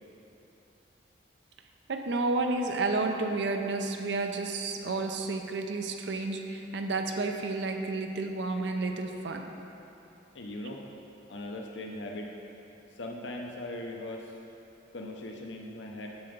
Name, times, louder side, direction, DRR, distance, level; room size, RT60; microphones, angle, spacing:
voice 1, 1.9-9.5 10.6-10.8, right 3 dB, 75° right, 5 dB, 0.6 m, -31 dB
voice 2, 10.3-10.8 11.3-12.3 13.0-14.3 14.9-16.1, left 1 dB, 80° left, 1 dB, 0.7 m, -39 dB
6.9 x 6.8 x 5.2 m, 2.9 s
head